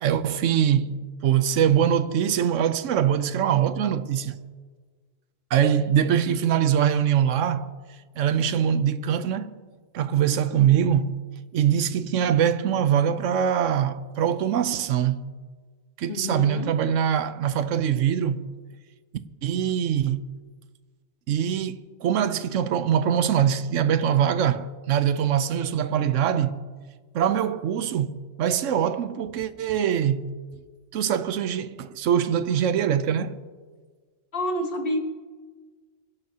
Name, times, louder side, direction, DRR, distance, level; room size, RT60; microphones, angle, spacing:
voice 1, 0.0-4.4 5.5-7.7 8.2-9.5 9.9-11.2 11.5-15.3 16.0-18.5 19.4-20.3 21.3-26.6 27.1-30.3 30.9-33.4, right 9 dB, 90° right, 1.0 m, -23 dB
voice 2, 16.1-16.7 34.3-35.0, equal, 50° left, 1.4 m, -28 dB
26.5 x 11.0 x 2.8 m
omnidirectional pair, 1.3 m